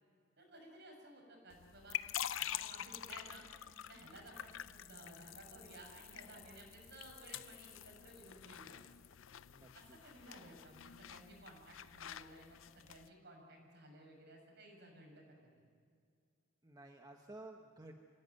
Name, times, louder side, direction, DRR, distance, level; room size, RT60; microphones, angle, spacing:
voice 1, 0.4-2.0 2.4-3.5 3.9-8.8 9.7-15.5, right 1 dB, 60° right, 1 dB, 6.9 m, -56 dB
sound 1, 1.5-13.1, left 11 dB, 80° left, 0.5 m, -47 dB
voice 2, 9.5-10.0 16.6-17.9, right 2 dB, 20° right, 3 dB, 1.2 m, -54 dB
25.5 x 16.5 x 9.4 m, 2.3 s
head